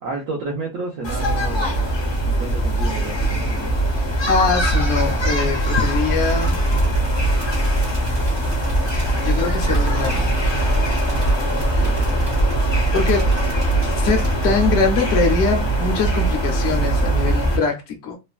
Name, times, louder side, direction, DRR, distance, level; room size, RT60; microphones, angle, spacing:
voice 1, 0.0-1.8 2.2-3.9 11.8-12.1, right 3 dB, 75° right, 1.0 m, -31 dB
sound 1, 1.0-17.6, right 1 dB, 35° left, 0.5 m, -20 dB
voice 2, 4.3-6.5 9.2-10.3 12.9-13.3 14.0-18.2, left 4 dB, 65° left, 0.8 m, -22 dB
sound 2, 6.3-14.5, left 1 dB, 25° right, 0.7 m, -33 dB
3.1 x 2.1 x 2.3 m
omnidirectional pair, 1.4 m